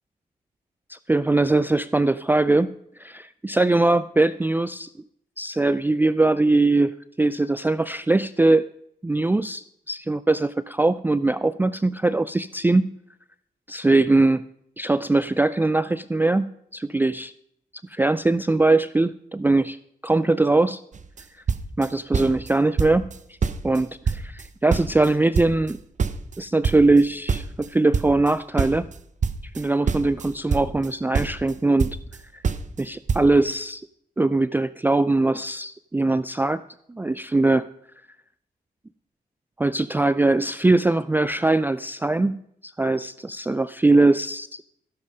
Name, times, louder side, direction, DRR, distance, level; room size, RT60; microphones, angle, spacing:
voice 1, 0.9-2.7 3.0-4.9 5.4-8.7 9.0-12.9 13.7-14.5 14.8-17.3 17.9-19.8 20.0-20.8 21.8-23.1 23.6-25.8 26.4-28.9 29.6-31.9 32.3-32.4 32.8-33.9 34.2-36.6 36.9-37.7 39.6-44.6, right 2 dB, 10° right, 16 dB, 0.4 m, -21 dB
sound 1, 20.9-21.2 21.5-22.5 22.8-23.2 23.4-25.1 25.3-28.3 28.6-30.9 31.1-32.2 32.4-32.8 33.1-33.3, right 5 dB, 50° right, 0.8 m, -25 dB
14.5 x 7.6 x 5.2 m, 0.72 s
cardioid pair, 60°, 17 cm